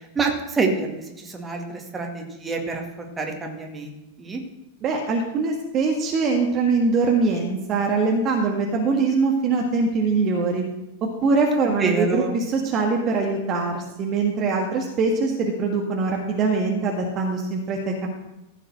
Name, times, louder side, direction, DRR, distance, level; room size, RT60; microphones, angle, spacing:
voice 1, 0.2-1.6 1.9-4.4 11.8-12.4, right 4 dB, 15° right, 1 dB, 2.1 m, -27 dB
voice 2, 4.8-10.6 11.0-18.1, right 4 dB, 35° right, 1 dB, 1.7 m, -23 dB
15.0 x 5.1 x 6.5 m, 0.92 s
figure-of-eight pair, 90°, 0 cm